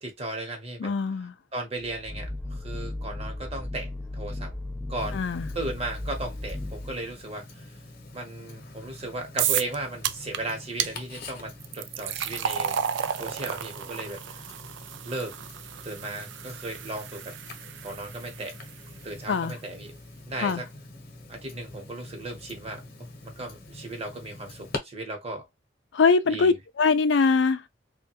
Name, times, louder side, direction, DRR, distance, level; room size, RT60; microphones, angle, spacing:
voice 1, 0.0-0.9 1.5-4.5 4.9-5.2 5.5-7.7 8.1-12.8 13.1-14.4 15.0-15.3 15.8-17.4 17.8-18.6 19.0-19.9 20.3-20.7 21.3-25.5 26.3-26.6, right 2 dB, 35° right, 1.0 m, -36 dB
voice 2, 0.8-1.3 5.1-5.5 19.3-19.6 20.4-20.6 25.9-27.6, left 4 dB, 80° left, 0.4 m, -22 dB
sound 1, 1.8-7.2, left 1 dB, 5° left, 0.3 m, -36 dB
Tick-tock, 5.0-24.8, left 2 dB, 55° left, 0.9 m, -45 dB
sound 2, 9.4-9.8 10.0-10.4 10.8-10.9 11.6-18.7, right 9 dB, 80° right, 0.3 m, -32 dB
3.2 x 2.2 x 2.8 m
head